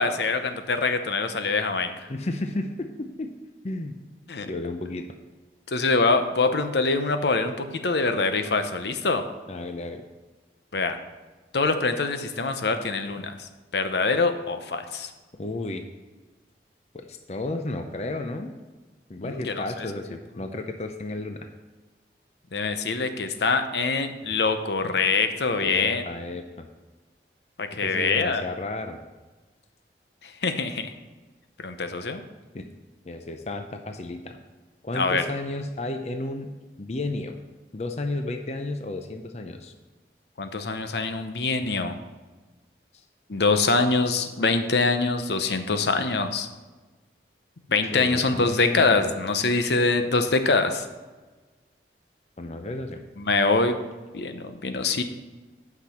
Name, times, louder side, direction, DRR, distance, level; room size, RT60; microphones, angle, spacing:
voice 1, 0.0-1.9 4.3-4.5 5.7-9.2 10.7-11.0 11.5-13.4 13.7-15.1 19.2-19.6 22.5-26.1 27.6-28.4 30.2-30.9 31.6-32.2 34.9-35.2 40.4-41.9 43.3-46.5 47.7-50.9 53.2-53.8 54.1-55.0, left 3 dB, 75° left, 8 dB, 0.8 m, -24 dB
voice 2, 2.1-3.3 3.6-4.0 4.5-5.1 9.5-10.0 15.4-15.8 16.9-18.6 19.1-21.5 25.6-26.7 27.8-29.0 32.5-32.7 33.0-34.4 34.8-36.5 36.8-37.4 37.7-39.7 47.9-49.1 52.4-53.0, left 2 dB, 35° left, 6 dB, 0.6 m, -33 dB
9.0 x 6.0 x 5.7 m, 1.3 s
head